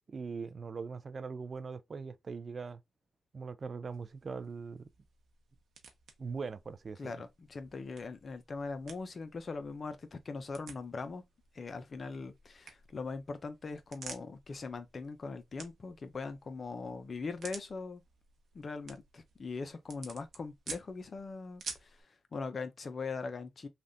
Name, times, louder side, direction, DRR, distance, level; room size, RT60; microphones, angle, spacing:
voice 1, 0.0-2.8 3.3-4.9 6.2-7.1, right 5 dB, 50° right, 0.4 m, -41 dB
sound 1, 3.8-22.0, right 5 dB, 65° right, 0.8 m, -52 dB
voice 2, 7.0-11.2 11.5-18.0 18.5-21.9 22.3-23.7, left 4 dB, 50° left, 0.7 m, -41 dB
3.3 x 2.5 x 2.6 m
cardioid pair, 60°, 0 cm